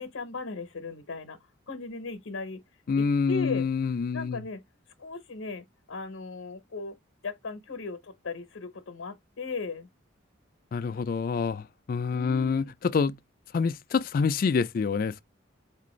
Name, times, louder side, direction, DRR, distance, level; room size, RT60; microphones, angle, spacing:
voice 1, 0.0-1.4 1.7-2.6 2.9-3.7 4.1-4.6 5.0-6.9 7.2-9.9 12.1-12.7, left 4 dB, 85° left, 0.7 m, -37 dB
voice 2, 2.9-4.4 10.7-13.1 13.5-15.2, left 5 dB, 45° left, 0.3 m, -27 dB
4.5 x 2.5 x 3.0 m
head